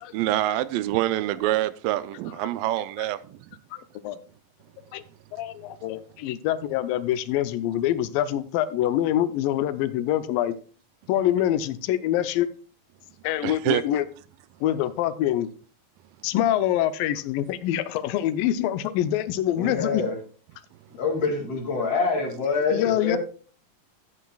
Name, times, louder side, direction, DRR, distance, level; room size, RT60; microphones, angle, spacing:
voice 1, 0.1-3.4 13.4-13.8, right 14 dB, 85° right, 2.3 m, -26 dB
voice 2, 3.7-4.2 4.9-5.0 5.3-10.6 11.1-12.5 13.2-14.0 14.6-15.5 16.2-20.0 22.7-23.2, left 12 dB, 85° left, 2.3 m, -25 dB
voice 3, 19.6-20.2 20.9-23.2, left 4 dB, 45° left, 3.2 m, -26 dB
14.0 x 8.6 x 2.3 m
omnidirectional pair, 4.0 m